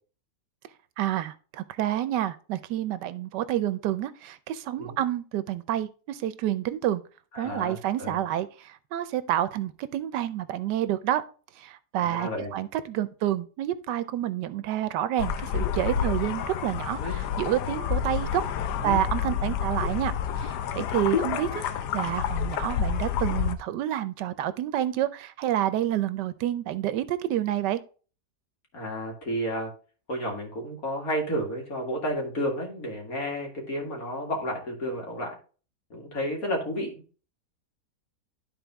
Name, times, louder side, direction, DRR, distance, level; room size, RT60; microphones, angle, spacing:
voice 1, 1.0-7.0 7.3-11.2 11.6-18.4 18.8-27.8, right 12 dB, 85° right, 14 dB, 1.3 m, -29 dB
voice 2, 7.3-8.2 12.0-12.5 17.0-17.1 18.8-19.0 28.7-29.7 30.1-35.3 35.9-37.0, equal, 55° left, 1 dB, 2.4 m, -31 dB
sound 1, 15.2-23.5, left 8 dB, 80° left, 1.2 m, -29 dB
12.0 x 4.1 x 3.4 m, 0.37 s
omnidirectional pair, 1.8 m